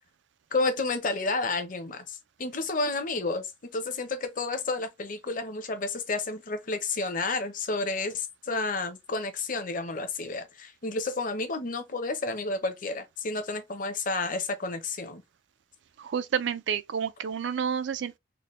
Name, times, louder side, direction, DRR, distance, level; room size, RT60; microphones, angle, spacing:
voice 1, 0.5-15.2, left 3 dB, 45° left, 0.7 m, -31 dB
voice 2, 16.0-18.2, right 7 dB, 70° right, 0.4 m, -30 dB
3.9 x 2.1 x 3.1 m
head